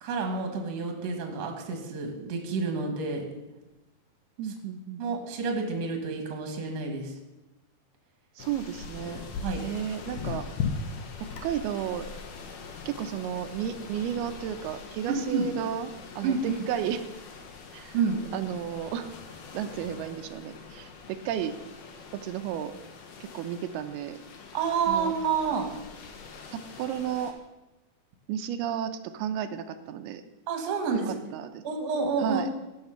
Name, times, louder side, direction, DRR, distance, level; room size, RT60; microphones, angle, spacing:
voice 1, 0.0-3.3 5.0-7.1 9.4-9.6 15.1-15.5 16.2-16.6 17.9-18.2 24.5-25.7 30.5-31.1 31.6-32.4, right 5 dB, 55° right, 3 dB, 2.2 m, -29 dB
voice 2, 4.4-5.0 8.4-9.2 9.6-10.5 11.2-12.1 12.9-17.0 17.7-18.0 18.3-19.1 19.5-21.5 22.1-22.7 23.2-24.2 24.9-25.1 26.5-27.3 28.3-30.2 30.9-31.6 32.2-32.5, right 9 dB, 90° right, 8 dB, 2.6 m, -33 dB
sound 1, 8.4-27.3, left 5 dB, 80° left, 3.1 m, -41 dB
16.0 x 5.8 x 5.8 m, 1.0 s
omnidirectional pair, 4.4 m